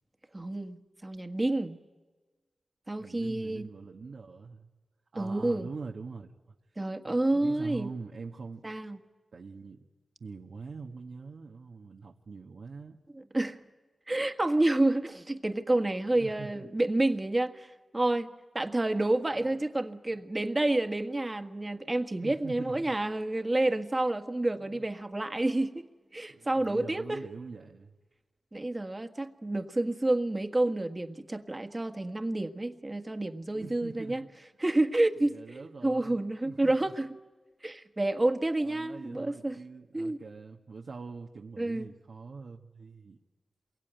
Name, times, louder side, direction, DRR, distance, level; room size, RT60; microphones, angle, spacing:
voice 1, 0.3-1.8 2.9-3.7 5.1-5.7 6.8-7.9 8.6-9.0 13.3-13.6 14.1-17.7 17.9-18.3 18.5-25.8 26.1-27.2 28.5-34.2 34.6-37.1 37.6-39.5 39.9-40.2 41.6-41.9, right 2 dB, 25° right, 1.7 m, -29 dB
voice 2, 3.0-4.7 5.1-6.3 7.0-8.6 9.3-9.8 10.2-13.0 16.1-16.6 22.2-22.9 24.6-24.8 26.3-27.9 33.5-34.3 35.2-36.9 38.6-43.2, right 4 dB, 70° right, 1.5 m, -44 dB
27.5 x 23.0 x 9.1 m
cardioid pair, 55°, 0 cm